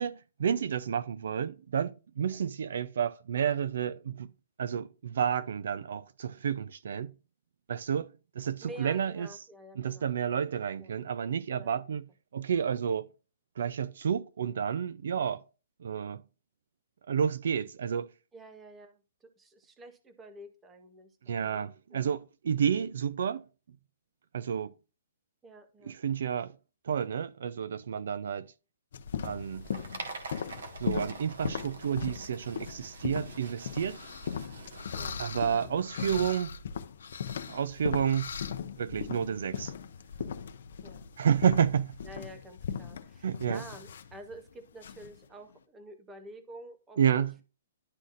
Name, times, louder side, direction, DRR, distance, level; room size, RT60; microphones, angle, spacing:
voice 1, 0.0-4.3 4.6-7.1 7.7-8.1 8.4-9.3 9.8-12.1 12.3-13.1 13.6-15.4 15.8-16.2 17.1-18.1 21.3-23.4 24.3-24.7 25.9-26.5 26.8-28.5 29.2-29.7 30.8-34.0 35.2-36.6 37.5-38.3 38.8-39.7 41.2-41.9 43.2-43.6 47.0-47.3, right 8 dB, 55° right, 0.4 m, -30 dB
voice 2, 8.6-10.5 10.8-10.9 11.5-11.8 18.3-21.7 21.9-22.1 25.4-25.9 35.0-36.0 40.8-41.1 42.0-47.4, right 1 dB, 10° right, 0.6 m, -49 dB
sound 1, 28.9-45.2, left 7 dB, 50° left, 0.6 m, -39 dB
sound 2, 29.3-36.4, right 3 dB, 75° right, 1.5 m, -46 dB
sound 3, 33.4-45.6, left 5 dB, 85° left, 0.8 m, -44 dB
11.5 x 4.0 x 2.5 m
hypercardioid pair, 180°, 0 cm